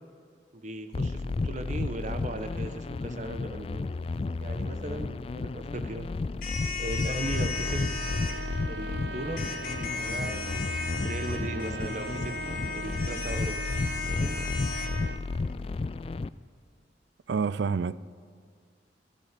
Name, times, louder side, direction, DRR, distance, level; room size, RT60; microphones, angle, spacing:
voice 1, 0.5-3.9 4.4-6.1 6.8-7.8 8.7-9.4 9.9-10.5 11.0-12.4 12.7-13.8 14.1-14.4, right 1 dB, 40° right, 1.1 m, -37 dB
sound 1, 0.9-16.3, left 3 dB, 35° left, 0.3 m, -32 dB
sound 2, 6.4-8.3 9.4-14.9, left 5 dB, 50° left, 2.0 m, -36 dB
Trumpet, 7.1-15.2, right 3 dB, 65° right, 0.8 m, -40 dB
voice 2, 17.3-18.0, right 5 dB, 80° right, 0.4 m, -27 dB
15.0 x 13.0 x 6.8 m
head